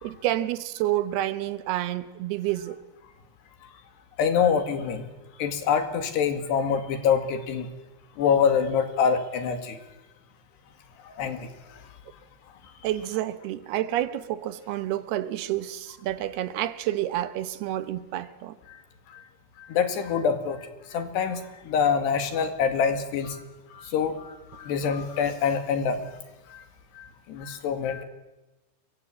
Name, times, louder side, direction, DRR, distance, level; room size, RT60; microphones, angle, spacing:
voice 1, 0.0-2.8 12.8-18.5, right 13 dB, 80° right, 3.0 m, -29 dB
voice 2, 4.2-5.1 5.4-7.7 8.2-9.8 11.2-11.5 19.7-20.6 20.9-23.4 23.7-26.0 26.5-26.6 27.0-28.0, left 6 dB, 90° left, 4.3 m, -25 dB
28.0 x 24.0 x 8.5 m
omnidirectional pair, 4.7 m